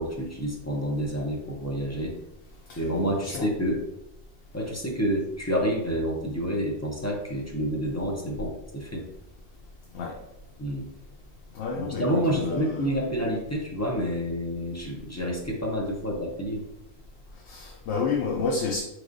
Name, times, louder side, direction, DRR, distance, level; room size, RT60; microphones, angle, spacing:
voice 1, 0.0-2.2 2.8-3.8 4.5-9.1 10.6-10.9 11.7-16.6, equal, 20° left, -2 dB, 0.4 m, -28 dB
voice 2, 3.2-3.5 9.9-10.1 11.5-13.0 17.5-18.8, left 4 dB, 80° left, -1 dB, 0.8 m, -30 dB
3.8 x 3.2 x 2.5 m, 0.84 s
omnidirectional pair, 1.1 m